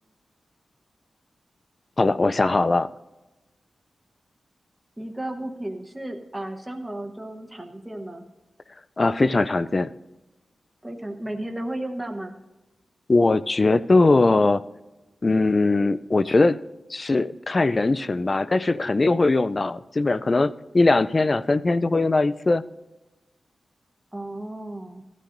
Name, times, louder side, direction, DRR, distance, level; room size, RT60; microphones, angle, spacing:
voice 1, 2.0-2.9 9.0-9.9 13.1-14.6 15.2-16.6 16.9-22.6, left 3 dB, 30° left, 15 dB, 0.3 m, -20 dB
voice 2, 5.0-8.2 10.8-12.4 24.1-25.0, right 1 dB, 10° right, 4 dB, 0.9 m, -34 dB
16.5 x 13.0 x 2.6 m, 1.1 s
wide cardioid pair, 160°, 0 cm